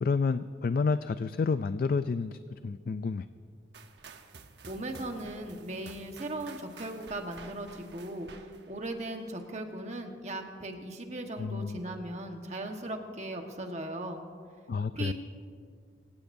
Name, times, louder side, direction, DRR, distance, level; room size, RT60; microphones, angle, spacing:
voice 1, 0.0-3.3 11.4-11.8 14.7-15.1, left 4 dB, 50° left, 12 dB, 0.3 m, -29 dB
sound 1, 3.7-9.6, right 4 dB, 70° right, 1.0 m, -51 dB
voice 2, 4.6-14.2 14.9-15.1, right 1 dB, 40° right, 4 dB, 1.3 m, -38 dB
25.0 x 16.0 x 2.7 m, 2.2 s
head